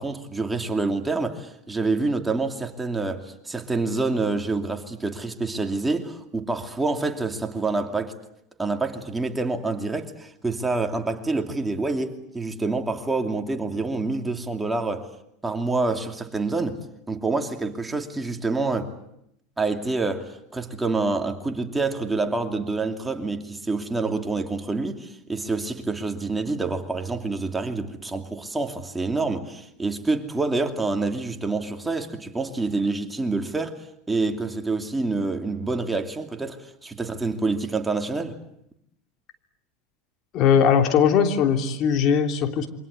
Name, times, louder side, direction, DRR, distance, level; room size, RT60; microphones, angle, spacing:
voice 1, 0.0-8.1 8.6-15.1 15.4-18.9 19.6-38.4, right 3 dB, 10° right, 2.7 m, -27 dB
voice 2, 40.3-42.7, left 7 dB, 50° left, 3.2 m, -19 dB
28.0 x 24.5 x 8.1 m
hypercardioid pair, 90°, 0 cm